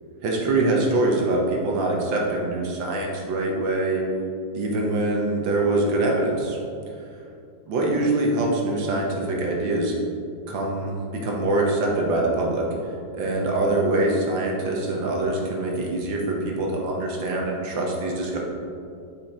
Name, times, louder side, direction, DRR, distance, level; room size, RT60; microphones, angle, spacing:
voice 1, 0.2-4.0 4.5-6.6 7.7-9.9 10.5-12.6 13.1-18.4, right 2 dB, 80° right, -1 dB, 1.7 m, -24 dB
6.1 x 5.1 x 4.3 m, 2.5 s
omnidirectional pair, 2.0 m